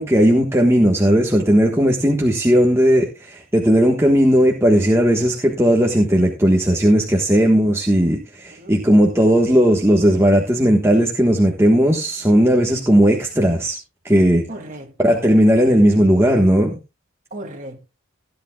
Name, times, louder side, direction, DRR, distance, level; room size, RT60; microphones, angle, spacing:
voice 1, 0.0-13.8 14.0-14.4 15.0-16.7, equal, 15° right, 1.3 m, -16 dB
voice 2, 8.5-8.8 14.5-15.3 17.3-17.8, right 1 dB, 40° right, 2.4 m, -36 dB
17.0 x 10.5 x 2.3 m
head